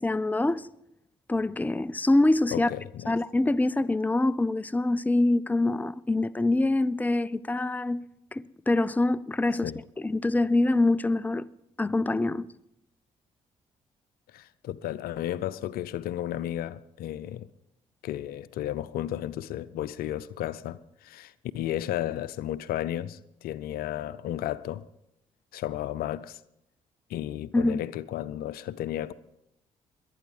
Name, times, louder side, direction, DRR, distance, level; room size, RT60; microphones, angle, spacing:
voice 1, 0.0-0.7 1.3-2.7 3.1-8.0 8.3-9.7 10.0-11.5 11.8-12.5 27.5-27.8, left 2 dB, 10° left, 0.5 m, -25 dB
voice 2, 2.5-3.1 9.6-9.8 14.3-17.5 18.0-24.9 25.5-26.4 27.1-29.1, left 12 dB, 70° left, 0.6 m, -33 dB
22.5 x 9.4 x 5.4 m
hypercardioid pair, 50°, 16 cm